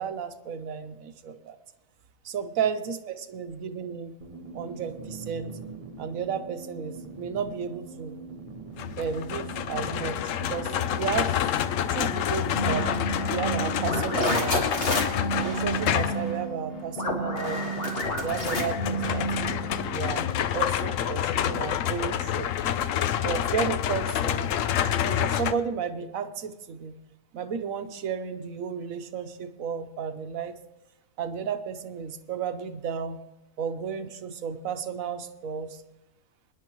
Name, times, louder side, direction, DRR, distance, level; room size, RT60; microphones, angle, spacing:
voice 1, 0.0-1.6 2.2-4.2 4.5-5.6 6.0-8.2 9.0-11.4 11.9-12.9 13.3-14.7 15.3-17.6 18.2-19.3 19.8-20.3 20.5-22.5 23.2-24.5 25.0-27.0 27.3-30.6 31.2-33.2 33.6-35.8, right 7 dB, 90° right, 9 dB, 1.3 m, -33 dB
sound 1, 4.2-20.3, right 4 dB, 30° right, 1.1 m, -42 dB
sound 2, 8.8-16.3 18.0-25.5, left 10 dB, 75° left, 1.0 m, -28 dB
sound 3, 12.5-19.8, right 1 dB, 45° left, 2.1 m, -30 dB
25.0 x 10.5 x 3.0 m, 0.97 s
omnidirectional pair, 1.4 m